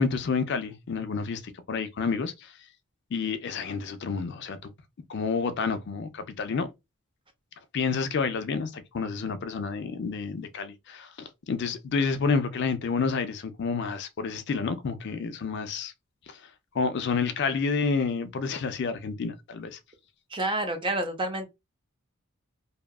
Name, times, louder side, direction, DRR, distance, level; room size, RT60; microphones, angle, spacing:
voice 1, 0.0-1.4 1.7-2.5 3.1-4.7 5.1-6.7 7.7-15.9 16.3-16.4 16.7-19.8, left 5 dB, 50° left, 0.4 m, -29 dB
voice 2, 20.3-21.5, right 1 dB, 20° right, 0.5 m, -28 dB
2.7 x 2.3 x 2.2 m
head